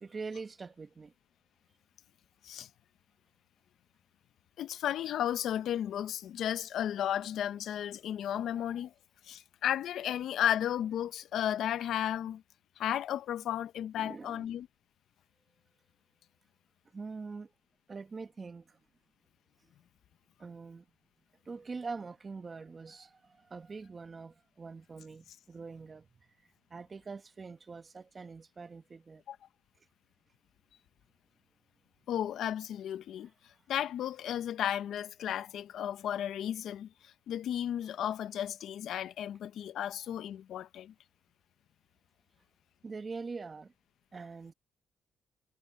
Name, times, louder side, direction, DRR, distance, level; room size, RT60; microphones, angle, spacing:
voice 1, 0.0-1.1 8.4-8.5 13.9-14.5 16.9-17.5 17.9-18.8 20.4-20.8 21.4-26.0 26.7-29.2 40.0-40.1 42.8-43.7 44.1-44.5, right 4 dB, 35° right, 1.6 m, -44 dB
voice 2, 4.6-8.9 9.3-12.4 12.8-14.7 29.3-29.4 32.1-33.3 33.7-40.9, left 10 dB, 75° left, 1.0 m, -34 dB
cardioid pair, 90°, 0 cm